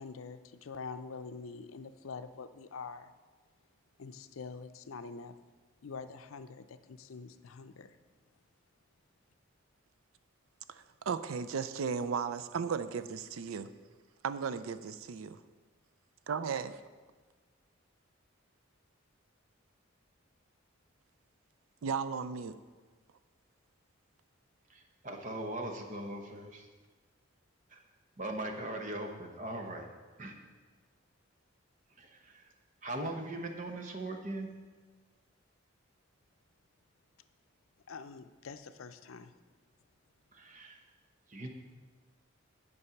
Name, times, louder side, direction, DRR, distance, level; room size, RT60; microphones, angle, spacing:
voice 1, 0.0-3.1 4.0-5.3 5.8-8.0 37.9-39.3, left 4 dB, 85° left, 10 dB, 0.5 m, -45 dB
voice 2, 10.7-13.7 14.2-15.4 16.3-16.8 21.8-22.6, right 6 dB, 85° right, 12 dB, 0.4 m, -35 dB
voice 3, 24.7-26.7 27.7-27.8 28.2-29.9 30.2-30.4 32.0-32.5 32.8-34.5 40.3-40.8 41.3-41.5, right 1 dB, 40° right, 4 dB, 1.0 m, -40 dB
9.7 x 5.4 x 5.8 m, 1.4 s
head